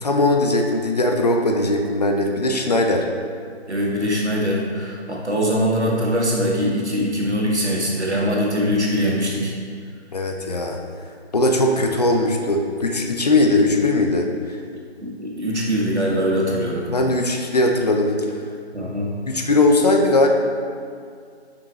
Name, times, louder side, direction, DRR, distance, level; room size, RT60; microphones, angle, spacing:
voice 1, 0.0-3.1 10.1-10.8 11.3-14.6 16.9-18.3 19.3-20.3, left 2 dB, 40° left, 2 dB, 0.6 m, -19 dB
voice 2, 3.7-9.5 15.0-16.9 18.7-19.1, equal, 85° right, -3 dB, 1.8 m, -22 dB
6.9 x 5.6 x 4.1 m, 2.2 s
figure-of-eight pair, 150°, 33 cm